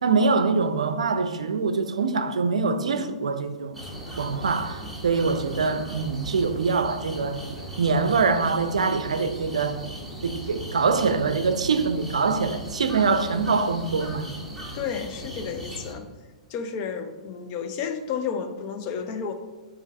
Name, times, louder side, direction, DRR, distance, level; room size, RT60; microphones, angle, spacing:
voice 1, 0.0-3.8 4.2-7.4 7.8-9.8 10.2-14.3, right 4 dB, 65° right, 0.5 m, -24 dB
voice 2, 2.7-3.2 14.7-16.1 16.5-19.3, left 6 dB, 35° left, 0.6 m, -32 dB
sound 1, 3.7-15.9, equal, ahead, 1.2 m, -38 dB
7.2 x 2.6 x 5.1 m
figure-of-eight pair, 110°, 4 cm